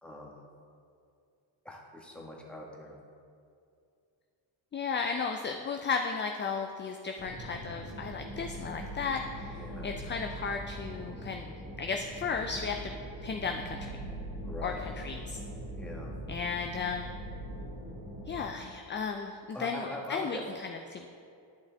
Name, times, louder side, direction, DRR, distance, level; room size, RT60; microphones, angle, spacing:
voice 1, 0.0-0.3 1.6-3.0 9.6-9.9 14.4-14.8 15.8-16.1 19.5-20.4, left 1 dB, ahead, -2 dB, 1.4 m, -42 dB
voice 2, 4.7-13.0 13.2-14.0 14.6-15.4 16.3-17.1 18.3-21.1, left 5 dB, 25° left, 4 dB, 0.4 m, -35 dB
sound 1, 7.2-18.4, right 1 dB, 25° right, 2.0 m, -41 dB
11.0 x 5.5 x 3.5 m, 2.4 s
cardioid pair, 85°, 46 cm